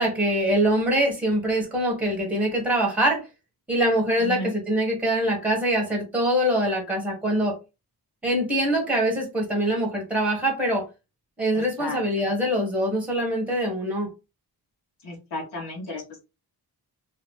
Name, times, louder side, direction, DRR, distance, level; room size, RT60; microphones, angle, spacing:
voice 1, 0.0-3.2 3.7-7.6 8.2-10.8 11.4-14.1, right 1 dB, 5° right, 1.2 m, -24 dB
voice 2, 4.2-4.5 11.5-12.0 15.0-16.2, left 1 dB, 80° left, 1.5 m, -34 dB
2.9 x 2.8 x 3.2 m
wide cardioid pair, 180°, 40 cm